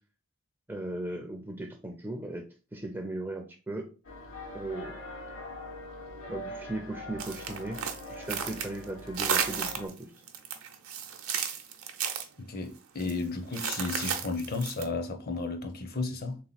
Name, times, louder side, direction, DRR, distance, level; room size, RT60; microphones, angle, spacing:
voice 1, 0.7-2.4 2.7-3.9 4.5-5.0 6.3-7.8 8.1-10.2, right 2 dB, 10° right, 0.4 m, -37 dB
sound 1, 4.0-9.9, left 1 dB, 60° left, 1.1 m, -43 dB
sound 2, 7.2-8.8 9.1-10.0 10.3-12.2 13.0-13.1 13.5-14.8, right 7 dB, 80° right, 0.7 m, -33 dB
voice 2, 12.4-16.4, left 3 dB, 45° left, 0.7 m, -33 dB
3.5 x 2.9 x 4.0 m
head